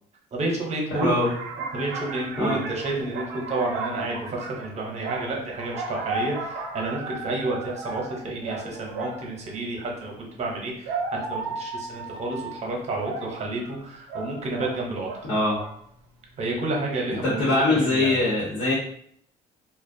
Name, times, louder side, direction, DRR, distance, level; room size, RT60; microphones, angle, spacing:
voice 1, 0.3-1.2 1.7-15.1 16.4-18.2, right 2 dB, 40° right, -1 dB, 0.7 m, -30 dB
sound 1, 0.9-9.4 10.4-15.3 15.6-15.9, right 3 dB, 85° right, 0.5 m, -35 dB
voice 2, 1.0-1.3 2.4-2.6 15.3-15.6 17.2-18.7, left 2 dB, 90° left, -6 dB, 0.9 m, -22 dB
2.4 x 2.1 x 2.5 m, 0.66 s
cardioid pair, 110°, 17 cm